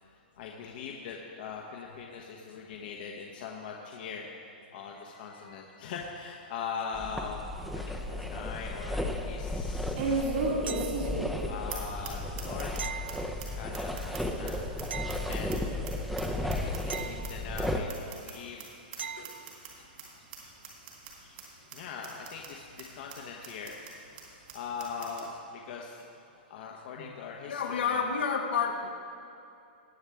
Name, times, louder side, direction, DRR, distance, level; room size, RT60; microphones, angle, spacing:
voice 1, 0.4-4.3 4.7-7.5 7.7-10.3 11.5-12.7 13.6-14.6 15.3-15.5 16.4-18.6 21.7-23.8 24.5-26.0 26.5-28.0, left 6 dB, 60° left, 0 dB, 1.1 m, -41 dB
voice 2, 5.1-5.6 19.2-19.3 27.0-27.1 27.5-28.9, left 6 dB, 80° left, 2 dB, 1.4 m, -31 dB
sound 1, 6.9-17.8, left 1 dB, ahead, 0.6 m, -34 dB
sound 2, 7.6-7.7 8.2-8.3 9.9-11.4 11.7-11.8 12.0-12.1 12.4-12.8 13.1-13.2 13.4-13.5 13.7-15.9 16.2-17.3 17.6-17.7 17.9-18.3 18.6-18.7 18.9-19.0 19.2-19.7 20.0-20.1 20.3-20.4 20.6-21.1 21.4-21.5 21.7-21.8 22.0-22.5 22.8-22.9 23.1-23.2 23.4-23.9 24.2-24.3 24.5-24.6 24.8-25.2, right 3 dB, 60° right, 3.1 m, -35 dB
sound 3, 10.7-11.4 12.8-13.9 14.9-15.9 16.9-17.9 19.0-19.6 22.4-22.5, right 7 dB, 85° right, 0.4 m, -42 dB
19.5 x 7.2 x 3.5 m, 2.6 s
hypercardioid pair, 140°, 6 cm